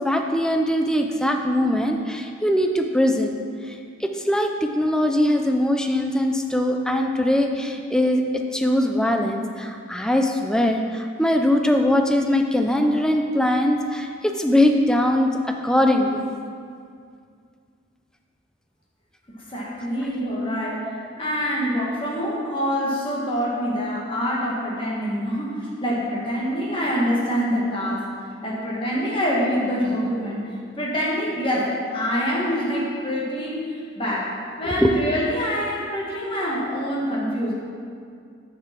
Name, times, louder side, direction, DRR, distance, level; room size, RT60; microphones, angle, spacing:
voice 1, 0.0-3.4 3.7-15.3 15.6-16.3 34.8-34.9, left 1 dB, 5° left, 3 dB, 0.5 m, -21 dB
voice 2, 19.3-20.8 21.2-28.0 28.4-30.4 30.8-34.3 34.6-37.5, equal, 30° left, -5 dB, 1.8 m, -25 dB
6.8 x 6.4 x 6.0 m, 2.2 s
head